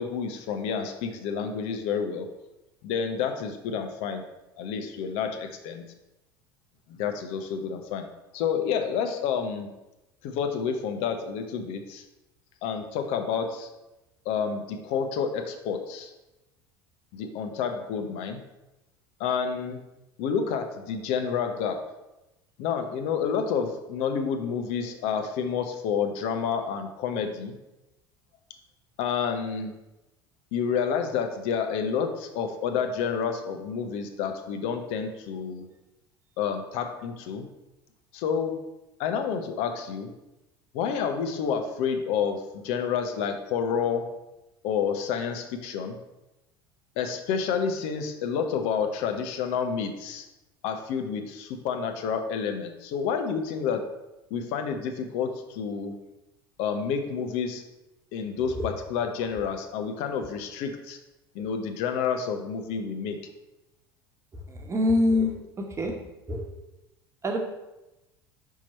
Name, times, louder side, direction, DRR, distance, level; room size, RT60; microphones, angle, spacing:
voice 1, 0.0-2.3 2.8-4.3 4.6-5.9 6.9-8.1 8.3-9.7 10.2-12.0 12.6-13.7 14.2-16.1 17.1-18.4 19.2-19.8 20.2-21.8 22.6-27.6 29.0-29.7 30.5-35.7 36.4-37.5 38.1-38.6 39.0-40.1 40.7-44.1 44.6-46.0 47.0-50.2 50.6-53.8 54.3-55.9 56.6-57.6 58.1-61.0 61.3-63.2, left 6 dB, 55° left, 6 dB, 0.8 m, -29 dB
voice 2, 64.5-65.3 65.8-65.9 66.3-66.4 67.2-67.4, left 2 dB, 25° right, 2 dB, 1.2 m, -23 dB
5.6 x 4.6 x 4.4 m, 0.97 s
figure-of-eight pair, 70°, 13 cm